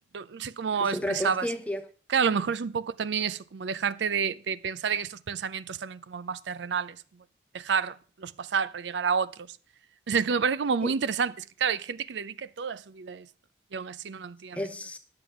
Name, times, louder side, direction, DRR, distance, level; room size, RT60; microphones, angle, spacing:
voice 1, 0.1-1.5 2.1-7.0 7.5-9.3 10.1-13.3 13.7-14.6, right 6 dB, 85° right, 0.5 m, -29 dB
voice 2, 0.7-1.9 2.3-2.4 10.8-10.9 14.5-15.0, left 1 dB, 10° left, 0.9 m, -32 dB
10.5 x 6.8 x 5.9 m
head